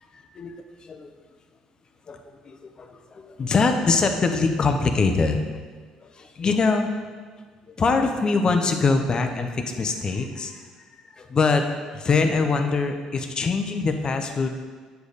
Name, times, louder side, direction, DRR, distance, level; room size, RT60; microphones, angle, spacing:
voice 1, 2.1-5.4 6.0-6.9 7.7-10.6 11.1-14.5, left 4 dB, 40° left, 6 dB, 0.9 m, -23 dB
8.0 x 5.1 x 4.2 m, 1.5 s
supercardioid pair, 75°, 2 cm